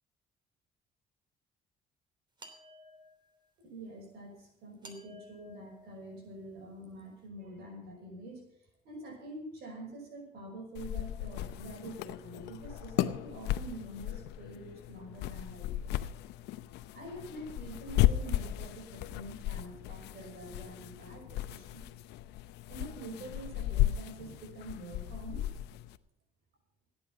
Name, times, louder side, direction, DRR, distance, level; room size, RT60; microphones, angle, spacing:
sound 1, 2.4-3.5 4.8-6.7, left 1 dB, 25° right, 3.2 m, -54 dB
voice 1, 3.6-8.5 8.8-15.9 16.9-21.9 22.7-25.5, right 1 dB, 70° right, 3 dB, 5.6 m, -46 dB
sound 2, 10.7-26.0, left 14 dB, 90° left, 0.8 m, -35 dB
17.0 x 9.7 x 6.0 m, 0.76 s
cardioid pair, 110°, 17 cm